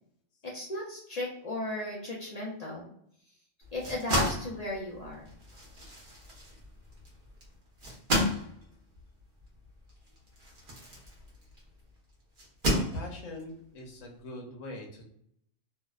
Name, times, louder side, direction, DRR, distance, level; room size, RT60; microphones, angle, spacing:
voice 1, 0.4-2.9 3.7-5.2, left 1 dB, 70° left, -4 dB, 0.3 m, -36 dB
sound 1, 3.6-11.7 12.4-13.4, equal, 50° right, 0.8 m, -33 dB
voice 2, 12.7-15.0, left 1 dB, 85° left, 0 dB, 1.0 m, -41 dB
2.6 x 2.0 x 2.3 m, 0.69 s
omnidirectional pair, 1.3 m